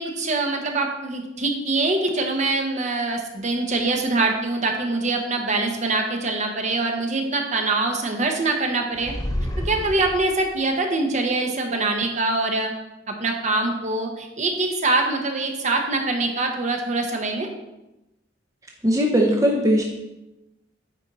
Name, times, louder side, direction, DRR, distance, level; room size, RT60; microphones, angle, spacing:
voice 1, 0.0-9.1 9.6-12.7 13.1-17.5, right 2 dB, 40° right, 3 dB, 1.0 m, -24 dB
sound 1, 8.9-10.6, equal, 20° left, 0.7 m, -29 dB
voice 2, 18.8-19.8, equal, 20° right, 0 dB, 0.7 m, -19 dB
9.2 x 4.4 x 4.0 m, 0.96 s
head